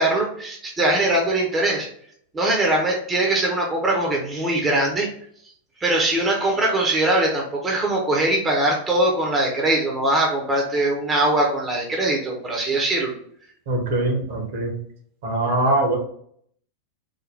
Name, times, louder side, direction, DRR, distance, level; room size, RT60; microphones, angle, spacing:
voice 1, 0.0-1.9 2.3-5.1 5.8-13.1, right 1 dB, 20° right, -1 dB, 0.8 m, -21 dB
voice 2, 13.7-14.7 15.2-16.0, right 2 dB, 55° right, 1 dB, 1.1 m, -22 dB
3.9 x 2.2 x 3.3 m, 0.63 s
figure-of-eight pair, 90°, 0 cm